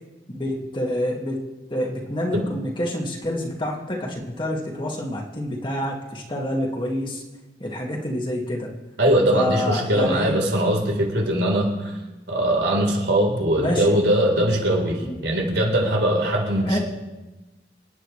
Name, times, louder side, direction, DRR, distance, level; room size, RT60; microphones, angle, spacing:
voice 1, 0.3-1.4 1.7-7.2 7.6-8.7 9.3-10.3 13.6-13.9 15.0-15.1 16.6-16.8, left 1 dB, 25° left, -1 dB, 2.1 m, -27 dB
voice 2, 9.0-11.9 12.3-16.8, right 1 dB, 85° right, -1 dB, 4.0 m, -21 dB
28.5 x 9.8 x 3.3 m, 1.1 s
head